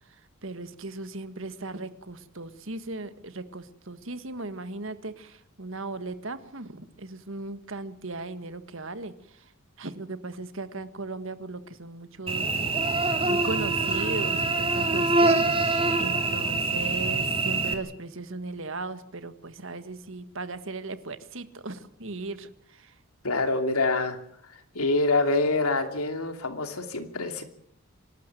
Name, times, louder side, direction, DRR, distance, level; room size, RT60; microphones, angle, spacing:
voice 1, 0.4-9.4 9.8-12.8 13.3-22.9, right 3 dB, 65° right, 11 dB, 1.6 m, -37 dB
Cricket / Buzz, 12.3-17.7, right 3 dB, 25° right, 2.3 m, -25 dB
voice 2, 23.2-24.2 24.5-27.4, left 3 dB, 90° left, 6 dB, 2.9 m, -26 dB
25.5 x 12.5 x 9.2 m, 0.72 s
head